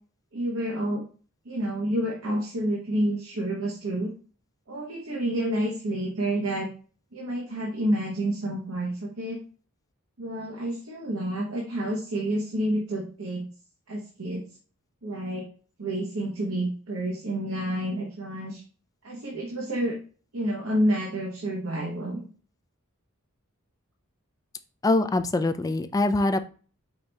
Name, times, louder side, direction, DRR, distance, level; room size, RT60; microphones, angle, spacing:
voice 1, 0.3-1.0 1.4-4.1 4.7-6.7 7.1-9.4 10.2-13.5 13.9-14.4 15.0-15.5 15.8-18.6 19.0-20.0 20.3-22.2, right 1 dB, 70° right, -1 dB, 0.9 m, -29 dB
voice 2, 24.8-26.4, left 2 dB, 15° left, 10 dB, 0.3 m, -23 dB
4.9 x 2.2 x 4.0 m, 0.39 s
head